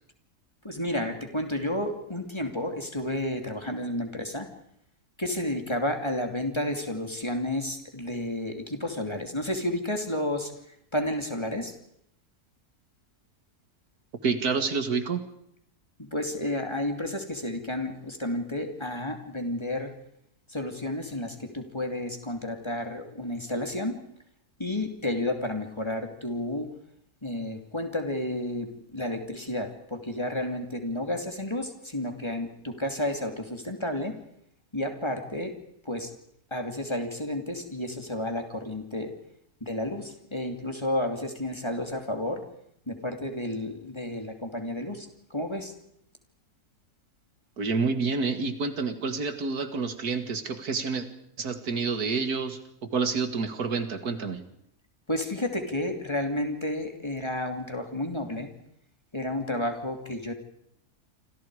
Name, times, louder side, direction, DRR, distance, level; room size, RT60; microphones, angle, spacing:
voice 1, 0.6-4.5 5.2-10.5 10.9-11.7 16.0-19.9 20.5-24.0 24.6-26.7 27.2-34.2 34.7-35.5 35.8-36.1 36.5-39.1 39.6-42.4 42.9-45.7 55.1-58.5 59.1-60.3, left 1 dB, 15° left, 5 dB, 2.9 m, -31 dB
voice 2, 14.2-15.2 47.6-51.1 51.4-54.4, right 4 dB, 75° right, 9 dB, 2.3 m, -28 dB
28.0 x 26.5 x 4.9 m, 0.72 s
omnidirectional pair, 1.6 m